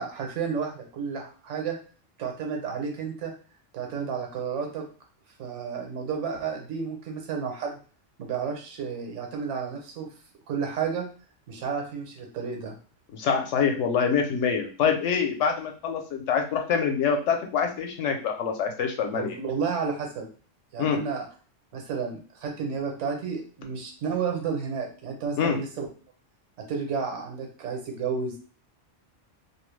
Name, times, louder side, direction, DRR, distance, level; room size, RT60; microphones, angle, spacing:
voice 1, 0.0-1.8 2.2-3.3 3.7-4.9 5.4-7.8 8.2-10.1 10.5-11.1 11.5-12.8 19.1-20.3 20.7-21.3 21.7-25.9 26.6-28.4, right 6 dB, 75° right, 2 dB, 1.0 m, -31 dB
voice 2, 13.1-19.3 20.8-21.0 25.4-25.6, left 6 dB, 75° left, 3 dB, 0.9 m, -25 dB
2.5 x 2.0 x 3.1 m, 0.38 s
omnidirectional pair, 1.3 m